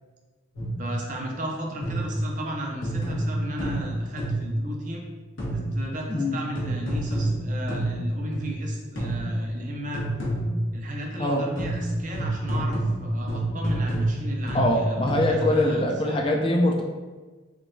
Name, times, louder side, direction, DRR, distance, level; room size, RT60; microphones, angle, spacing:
sound 1, 0.6-0.9 1.8-2.3 2.8-4.6 5.4-5.9 6.6-8.6 9.0-9.5 9.9-10.7 11.6-15.5, right 1 dB, 85° left, 1.2 m, -28 dB
voice 1, 0.8-5.0 5.5-10.0 10.7-16.2, right 1 dB, 40° right, 0 dB, 0.5 m, -35 dB
voice 2, 6.1-6.4 11.2-11.4 14.5-16.8, left 1 dB, 25° left, 1 dB, 0.3 m, -23 dB
3.7 x 3.3 x 2.5 m, 1.3 s
head